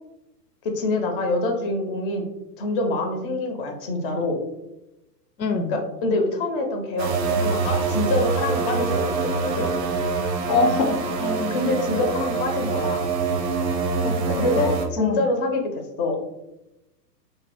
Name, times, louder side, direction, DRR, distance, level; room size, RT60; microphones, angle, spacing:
voice 1, 0.6-2.2 2.6-4.4 5.7-9.7 11.5-13.1 14.4-16.2, left 2 dB, 35° left, 3 dB, 0.4 m, -25 dB
voice 2, 5.4-5.7 10.5-11.6 14.0-14.7 15.0-15.2, left 4 dB, 85° left, 7 dB, 0.6 m, -25 dB
sound 1, 7.0-14.9, right 4 dB, 45° right, 0.5 m, -25 dB
2.6 x 2.2 x 3.2 m, 0.93 s
figure-of-eight pair, 110°, 49 cm